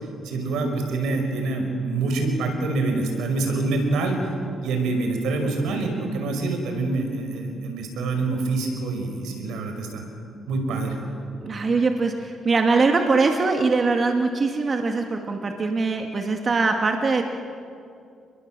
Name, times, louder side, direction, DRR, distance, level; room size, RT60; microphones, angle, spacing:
voice 1, 0.2-4.2 4.6-10.0 10.5-11.0, right 3 dB, 85° right, 4 dB, 5.4 m, -26 dB
voice 2, 11.4-17.2, right 3 dB, 40° right, 3 dB, 2.2 m, -22 dB
30.0 x 21.5 x 7.6 m, 2.5 s
cardioid pair, 90°, 0 cm